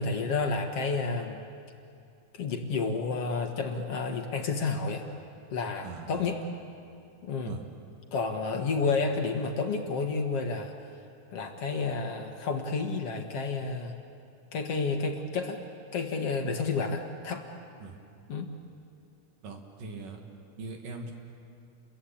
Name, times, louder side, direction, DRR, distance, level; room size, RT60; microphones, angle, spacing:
voice 1, 0.0-1.4 2.3-5.0 5.5-6.4 7.2-7.5 8.1-10.7 11.3-13.9 14.5-15.6 15.9-17.5 18.3-18.5, left 4 dB, 55° left, 3 dB, 2.3 m, -30 dB
voice 2, 5.8-6.2 7.4-7.6 17.8-17.9 19.4-20.2 20.6-21.1, right 3 dB, 85° right, 2 dB, 4.1 m, -41 dB
29.5 x 23.0 x 8.8 m, 2.4 s
omnidirectional pair, 3.7 m